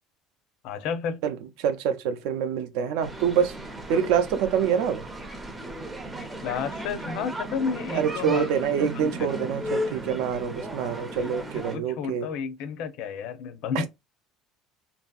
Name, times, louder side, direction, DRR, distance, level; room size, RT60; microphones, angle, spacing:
voice 1, 0.6-1.2 6.4-8.4 8.8-9.3 10.8-10.9 11.2-13.9, left 6 dB, 60° left, 0.5 m, -32 dB
voice 2, 1.2-3.5 3.9-5.0 7.9-12.3 13.7-13.9, right 7 dB, 75° right, 0.5 m, -26 dB
sound 1, 3.0-11.8, right 1 dB, 15° right, 0.5 m, -35 dB
2.8 x 2.6 x 2.3 m
cardioid pair, 155°, 0 cm